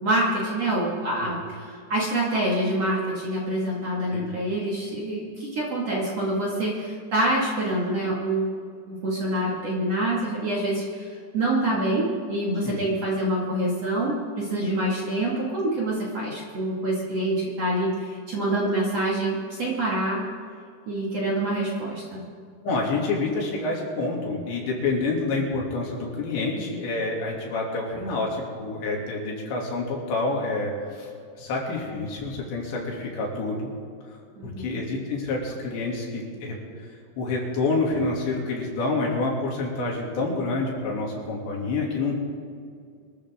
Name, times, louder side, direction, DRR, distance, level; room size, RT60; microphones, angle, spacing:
voice 1, 0.0-8.5 8.9-20.2 20.9-22.2 34.4-34.8, right 1 dB, 45° right, -5 dB, 2.5 m, -26 dB
voice 2, 22.6-33.7 34.1-34.2 34.4-36.6 37.2-42.2, left 3 dB, 70° left, -2 dB, 4.8 m, -28 dB
25.0 x 13.5 x 3.7 m, 2.3 s
omnidirectional pair, 5.3 m